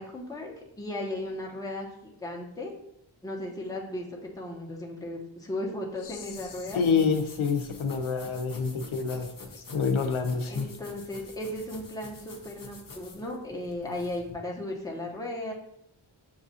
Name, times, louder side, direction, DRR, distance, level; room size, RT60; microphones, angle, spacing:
voice 1, 0.0-1.9 2.2-2.7 3.2-6.8 10.5-15.5, left 1 dB, 10° left, -1 dB, 0.8 m, -36 dB
sound 1, 6.0-14.3, left 3 dB, 45° left, 0.7 m, -47 dB
voice 2, 6.7-9.3 9.7-10.7, left 5 dB, 80° left, 5 dB, 0.6 m, -27 dB
7.1 x 2.4 x 2.7 m, 0.77 s
wide cardioid pair, 70°, 48 cm